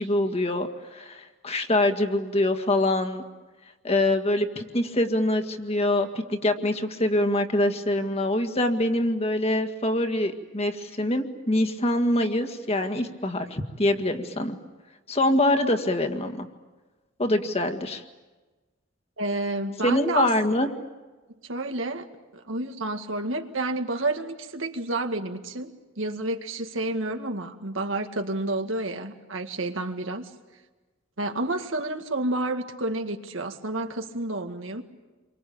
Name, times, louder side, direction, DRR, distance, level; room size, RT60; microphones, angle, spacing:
voice 1, 0.0-3.2 3.8-14.6 15.1-16.5 17.2-18.0 19.8-20.7, left 1 dB, 35° left, 7 dB, 1.9 m, -24 dB
voice 2, 19.2-20.3 21.4-22.1 22.3-30.3 31.2-34.8, right 2 dB, 85° right, 5 dB, 2.1 m, -30 dB
28.5 x 24.0 x 8.7 m, 1.2 s
head